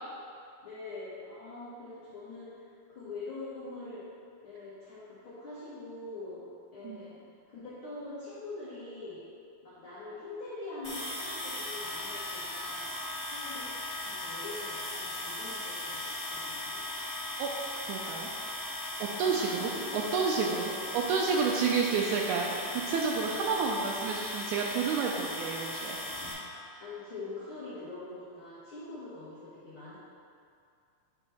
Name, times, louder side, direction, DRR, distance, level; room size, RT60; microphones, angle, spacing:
voice 1, 0.6-2.6 2.9-4.0 4.4-6.4 6.7-7.2 7.5-9.2 9.6-12.9 13.2-13.7 14.0-16.8 19.3-19.9 20.5-20.6 23.4-24.0 26.8-30.0, left 2 dB, 70° left, -11 dB, 1.2 m, -43 dB
sound 1, 10.8-26.3, left 1 dB, 50° left, 0.6 m, -38 dB
voice 2, 17.9-18.3 19.0-22.5 22.9-26.0, right 5 dB, 85° right, -1 dB, 1.7 m, -30 dB
8.3 x 4.3 x 3.5 m, 2.4 s
omnidirectional pair, 4.0 m